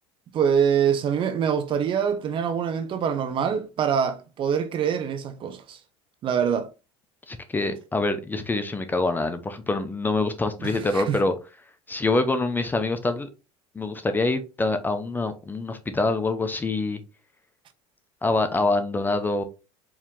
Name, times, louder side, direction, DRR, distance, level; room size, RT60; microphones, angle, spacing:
voice 1, 0.3-5.8 6.2-6.7 10.6-11.2, right 7 dB, 40° right, 0.8 m, -24 dB
voice 2, 7.3-11.3 11.9-13.3 13.7-17.0 18.2-19.4, left 2 dB, 15° left, 0.6 m, -25 dB
4.7 x 2.9 x 3.6 m
supercardioid pair, 115°, 13 cm